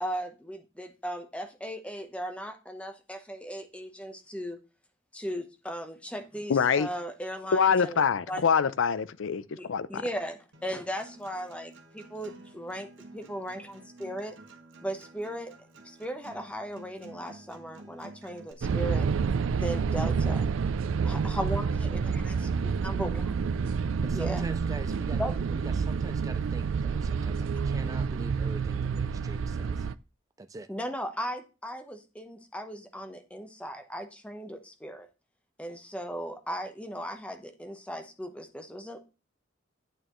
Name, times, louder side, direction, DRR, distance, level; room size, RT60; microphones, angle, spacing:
voice 1, 0.0-4.6 5.1-8.0 8.3-8.4 9.6-14.3 14.8-15.5 15.8-19.1 19.5-20.5 21.0-22.0 22.2-22.4 22.8-23.4 24.1-24.4 25.2-25.4 30.7-35.1 35.6-39.0, equal, 5° left, 0.9 m, -37 dB
voice 2, 6.5-6.9 7.5-10.0, left 6 dB, 80° left, 0.5 m, -25 dB
Acoustic guitar, 10.5-18.5, right 2 dB, 70° right, 1.5 m, -51 dB
sound 1, 18.6-29.9, right 5 dB, 85° right, 0.4 m, -28 dB
voice 3, 24.0-25.3 25.6-29.9 30.4-30.7, right 2 dB, 15° right, 0.3 m, -44 dB
9.0 x 8.7 x 3.1 m
head